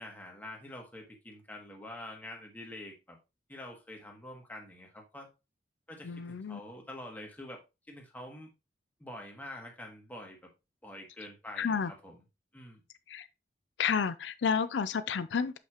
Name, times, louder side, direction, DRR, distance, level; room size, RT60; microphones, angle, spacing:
voice 1, 0.0-3.2 3.5-5.3 5.9-7.6 7.9-8.5 9.0-10.4 10.8-12.2 12.5-12.8, left 1 dB, 10° left, 1.7 m, -46 dB
voice 2, 6.0-6.6 11.6-11.9 13.1-13.3 13.8-15.6, left 6 dB, 85° left, 0.4 m, -31 dB
6.9 x 5.5 x 3.0 m
head